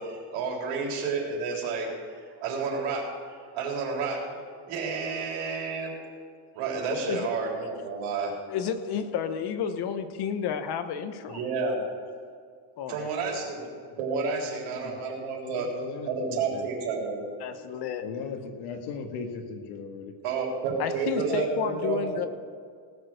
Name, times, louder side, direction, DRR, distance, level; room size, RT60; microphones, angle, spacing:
voice 1, 0.0-4.2 4.7-5.9 6.5-8.3 11.3-11.8 12.9-13.7 14.0-15.7 16.1-17.2 20.0-22.3, right 4 dB, 85° right, -1 dB, 3.9 m, -31 dB
voice 2, 8.5-11.4 12.8-13.1 17.4-18.0 20.8-22.3, left 7 dB, 50° left, 9 dB, 1.1 m, -31 dB
voice 3, 14.5-16.1 16.5-16.7 18.0-20.1, left 5 dB, 85° left, 4 dB, 1.9 m, -38 dB
18.5 x 6.8 x 6.6 m, 2.1 s
cardioid pair, 170°, 50 cm